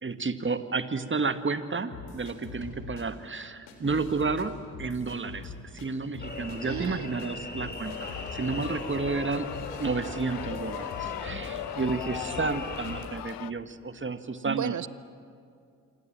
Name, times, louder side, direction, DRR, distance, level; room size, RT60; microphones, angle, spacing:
voice 1, 0.0-9.5 9.8-14.7, right 4 dB, 25° right, 10 dB, 1.8 m, -31 dB
sound 1, 1.9-3.0 3.7-4.5 4.7-5.9 6.1-6.9 7.2-7.3 7.5-11.5 11.8-12.5 12.8-13.1, left 6 dB, 75° left, 3.7 m, -43 dB
sound 2, 6.2-13.0, left 2 dB, 25° left, 4.8 m, -40 dB
voice 2, 6.6-7.1 14.4-14.9, right 9 dB, 45° right, 18 dB, 0.9 m, -33 dB
sound 3, 7.8-13.5, left 15 dB, 55° left, 0.6 m, -39 dB
27.0 x 25.5 x 7.6 m, 2.4 s
hypercardioid pair, 45°, 43 cm